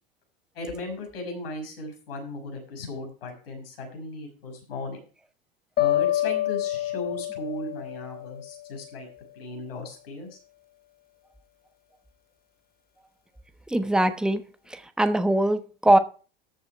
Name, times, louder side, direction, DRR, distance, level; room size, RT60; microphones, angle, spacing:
voice 1, 0.5-5.0 5.8-9.1 9.3-10.4, left 2 dB, 80° left, 5.9 m, -36 dB
sound 1, 5.8-8.9, left 13 dB, 30° left, 1.3 m, -27 dB
voice 2, 13.7-14.4 14.7-16.0, right 1 dB, 5° right, 1.1 m, -22 dB
13.5 x 6.9 x 4.7 m
hypercardioid pair, 85°, 29 cm